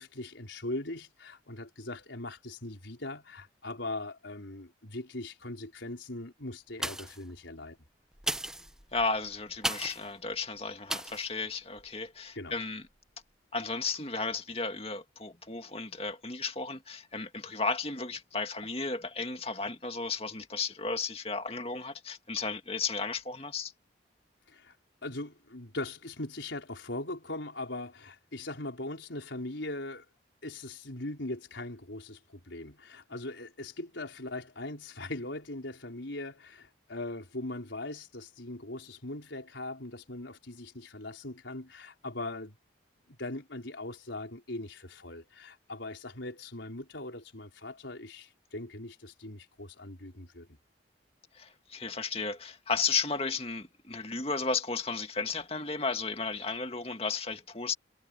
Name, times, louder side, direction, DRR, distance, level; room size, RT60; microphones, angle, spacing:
voice 1, 0.0-7.8 12.4-12.6 24.5-24.7 25.0-30.1 30.4-42.5 43.1-50.6, left 2 dB, 80° left, 4.6 m, -40 dB
sound 1, 6.7-7.3 8.1-10.1 10.9-11.3 11.8-11.9, right 1 dB, 5° right, 0.8 m, -35 dB
voice 2, 8.9-12.8 13.5-23.7 51.4-57.7, left 4 dB, 30° left, 2.1 m, -34 dB
head